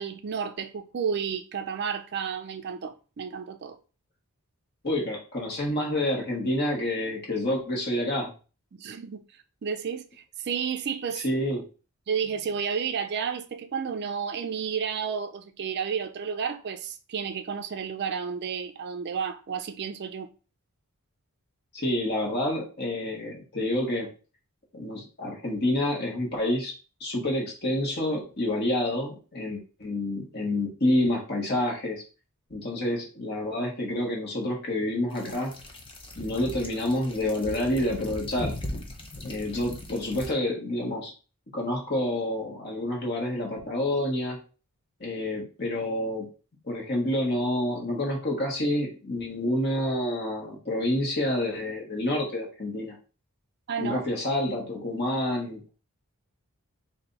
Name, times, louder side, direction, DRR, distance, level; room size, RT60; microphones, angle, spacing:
voice 1, 0.0-3.8 8.7-9.2 9.6-10.1 10.4-11.2 12.1-20.3 53.7-54.0, right 6 dB, 50° right, 0.4 m, -31 dB
voice 2, 4.8-8.3 11.1-11.6 21.7-24.1 24.7-26.7 27.0-32.0 32.5-35.5 36.2-38.5 39.2-41.1 41.5-44.4 45.0-46.3 46.6-53.0 53.8-55.7, left 1 dB, 45° left, 1.3 m, -28 dB
sound 1, 35.1-40.3, left 1 dB, 25° left, 0.6 m, -39 dB
3.3 x 2.6 x 3.9 m
head